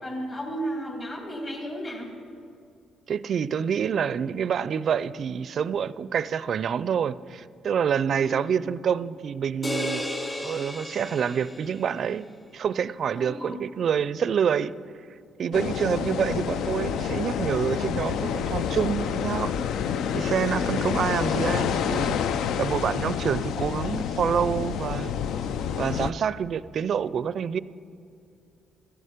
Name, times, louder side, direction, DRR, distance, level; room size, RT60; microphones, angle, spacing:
voice 1, 0.0-2.1 8.2-8.4 13.1-13.6, right 1 dB, 35° left, -1 dB, 3.6 m, -34 dB
voice 2, 3.1-10.0 10.4-12.3 12.5-14.7 15.4-19.5 20.1-22.2 22.6-25.1 25.8-27.6, right 7 dB, 60° right, 17 dB, 0.4 m, -27 dB
sound 1, 9.6-12.0, left 1 dB, 20° left, 2.0 m, -33 dB
sound 2, 15.5-26.1, left 8 dB, 80° left, 0.4 m, -28 dB
14.5 x 11.0 x 5.1 m, 2.5 s
cardioid pair, 90°, 0 cm